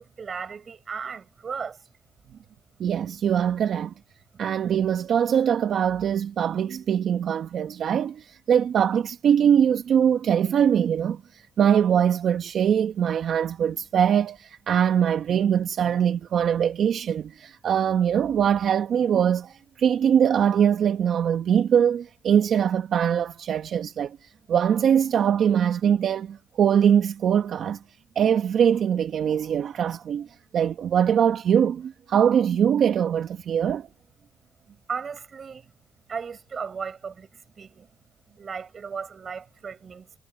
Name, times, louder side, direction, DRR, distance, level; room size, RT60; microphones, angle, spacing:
voice 1, 0.0-1.9 4.3-4.4 34.9-35.7 36.1-37.9 38.4-40.1, right 6 dB, 45° right, 6.4 m, -36 dB
voice 2, 2.8-3.9 4.4-27.8 28.1-30.3 30.5-33.9, right 8 dB, 65° right, 1.3 m, -22 dB
cardioid pair, 90°, 0 cm